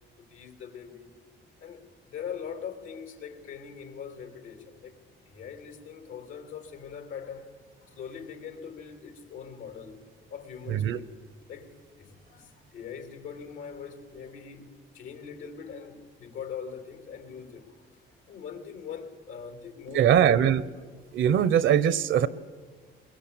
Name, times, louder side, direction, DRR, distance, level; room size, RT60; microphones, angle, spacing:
voice 1, 0.2-1.1 1.6-5.0 5.3-7.5 7.8-10.0 10.3-11.1 11.5-17.9 18.3-20.6, left 7 dB, 85° left, 3.2 m, -42 dB
voice 2, 19.9-20.6 21.1-22.3, right 9 dB, 75° right, 1.1 m, -21 dB
22.0 x 22.0 x 8.7 m
cardioid pair, 90°, 20 cm